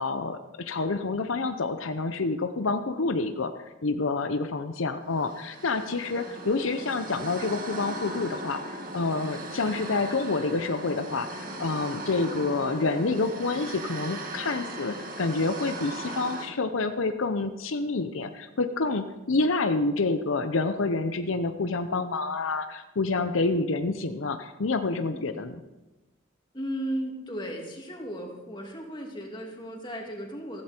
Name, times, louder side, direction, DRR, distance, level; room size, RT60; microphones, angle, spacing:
voice 1, 0.0-3.5 3.8-25.6, left 3 dB, 80° left, 8 dB, 0.8 m, -28 dB
sound 1, 5.2-16.4, right 1 dB, 45° right, 2.1 m, -38 dB
voice 2, 25.0-25.3 26.5-30.6, equal, 25° left, 0 dB, 2.7 m, -35 dB
15.0 x 14.5 x 4.5 m, 1.1 s
head